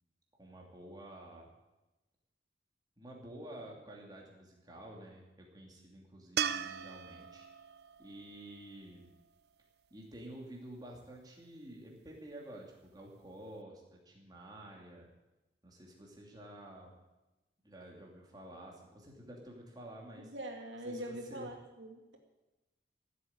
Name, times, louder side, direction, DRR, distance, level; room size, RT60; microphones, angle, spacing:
voice 1, 0.4-1.5 3.0-7.5 8.0-9.1 9.9-15.1 15.6-16.9 17.6-20.3 20.8-21.5, right 1 dB, 20° right, -1 dB, 2.8 m, -50 dB
sound 1, 6.4-9.6 12.9-13.0, right 8 dB, 55° right, 0.5 m, -39 dB
voice 2, 20.2-22.2, right 1 dB, 80° right, 2 dB, 2.4 m, -43 dB
15.0 x 8.3 x 9.0 m, 1.0 s
head